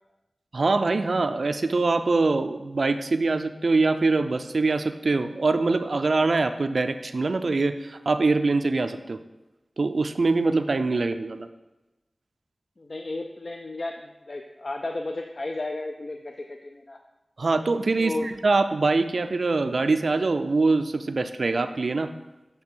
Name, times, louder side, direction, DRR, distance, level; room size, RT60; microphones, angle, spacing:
voice 1, 0.5-9.2 9.8-11.5 17.4-22.1, right 3 dB, 70° right, 9 dB, 0.3 m, -23 dB
voice 2, 12.8-17.0 18.0-18.3, left 2 dB, 60° left, 4 dB, 0.4 m, -33 dB
7.6 x 3.3 x 4.5 m, 1.0 s
cardioid pair, 45°, 0 cm